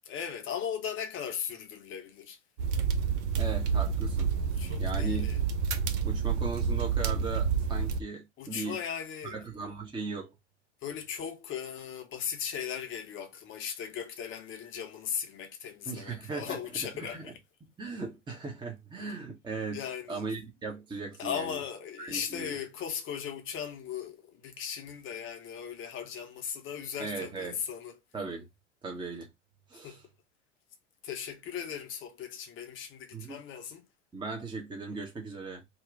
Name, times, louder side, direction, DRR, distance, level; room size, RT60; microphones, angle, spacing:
voice 1, 0.0-2.4 4.6-5.4 8.4-9.3 10.8-17.4 19.7-20.2 21.2-28.0 29.8-30.0 31.0-33.9, left 8 dB, 30° left, 0.8 m, -38 dB
sound 1, 2.6-8.0, right 6 dB, 65° right, 0.7 m, -29 dB
voice 2, 3.3-4.3 4.8-5.3 6.0-8.8 9.3-10.3 15.9-16.6 17.1-17.3 17.8-19.8 20.1-21.6 22.0-22.5 27.0-27.6 28.1-28.5 28.8-29.3 29.7-30.0 33.1-33.4 34.1-35.6, right 4 dB, 10° right, 0.9 m, -38 dB
2.9 x 2.3 x 3.8 m
figure-of-eight pair, 85°, 38 cm